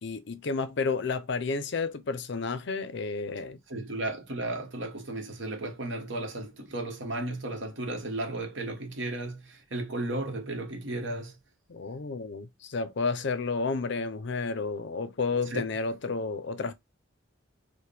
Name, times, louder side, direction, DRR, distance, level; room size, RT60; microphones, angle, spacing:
voice 1, 0.0-3.6 11.7-16.7, left 4 dB, 60° left, 0.5 m, -31 dB
voice 2, 3.7-11.4 15.5-15.7, right 2 dB, 60° right, 1.1 m, -34 dB
4.5 x 2.2 x 3.3 m
head